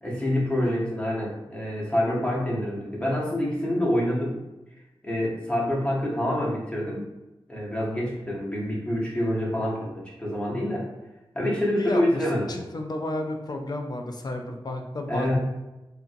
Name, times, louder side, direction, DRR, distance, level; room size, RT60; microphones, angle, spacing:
voice 1, 0.0-4.4 5.0-7.1 7.5-10.9 11.3-12.6 15.1-15.4, left 1 dB, 10° left, -5 dB, 0.8 m, -26 dB
voice 2, 11.7-15.4, left 2 dB, 45° left, 4 dB, 0.4 m, -32 dB
2.8 x 2.5 x 2.5 m, 1.0 s
wide cardioid pair, 70°, 10 cm